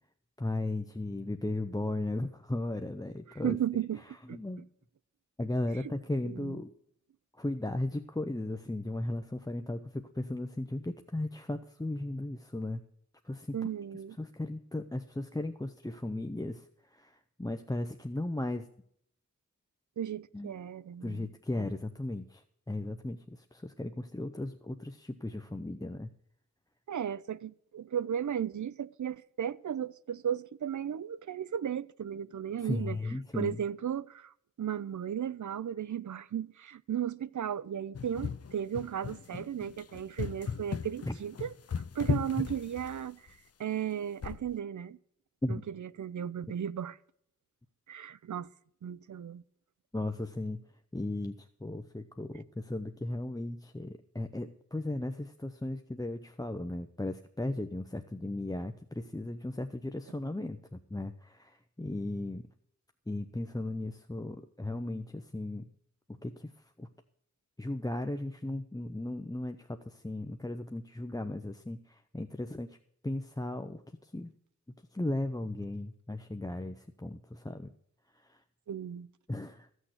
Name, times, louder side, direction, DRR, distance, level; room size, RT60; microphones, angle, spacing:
voice 1, 0.4-3.6 4.3-4.7 5.4-6.7 7.4-12.8 13.2-13.6 14.2-18.7 20.3-20.5 21.0-26.1 32.6-33.6 41.1-41.2 45.4-45.6 49.9-50.6 50.9-62.5 63.1-65.7 66.2-66.5 66.8-66.9 67.6-72.8 73.0-74.3 74.9-77.7 78.1-78.4 79.3-79.7, left 1 dB, 10° left, 0.7 m, -36 dB
voice 2, 3.3-4.4 5.8-5.9 6.2-6.6 13.5-14.2 20.0-21.3 21.6-21.7 26.9-33.0 33.3-41.5 41.9-45.0 45.5-47.0 47.9-48.5 48.8-49.4 78.7-79.1, right 9 dB, 75° right, 0.5 m, -35 dB
sound 1, 37.9-43.3 44.2-44.5, left 7 dB, 55° left, 0.5 m, -37 dB
15.0 x 6.4 x 7.8 m
wide cardioid pair, 65°, 30 cm